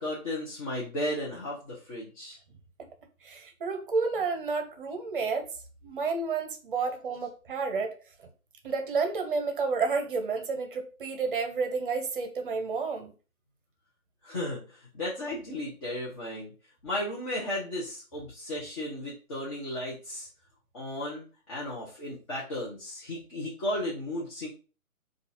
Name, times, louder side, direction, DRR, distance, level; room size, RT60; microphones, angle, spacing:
voice 1, 0.0-2.4 14.2-16.5 16.8-20.3 20.7-24.5, left 1 dB, 25° left, -6 dB, 0.8 m, -34 dB
voice 2, 3.2-5.5 5.8-8.0 8.6-13.1, right 4 dB, 40° right, 5 dB, 0.7 m, -30 dB
3.9 x 2.4 x 2.6 m, 0.35 s
hypercardioid pair, 150°, 43 cm